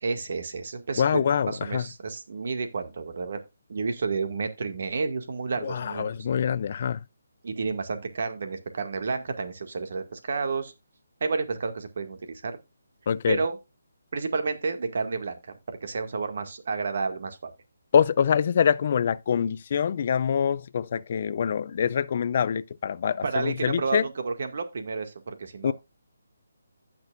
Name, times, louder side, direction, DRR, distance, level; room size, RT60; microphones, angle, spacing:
voice 1, 0.0-3.4 3.7-6.1 7.4-10.7 11.2-12.6 13.3-13.6 14.1-17.5 23.2-25.7, right 4 dB, 55° right, 2.0 m, -31 dB
voice 2, 1.0-1.8 5.6-7.0 13.1-13.4 17.9-24.0 25.6-25.7, left 7 dB, 45° left, 0.4 m, -25 dB
15.5 x 6.1 x 2.5 m
hypercardioid pair, 160°, 0 cm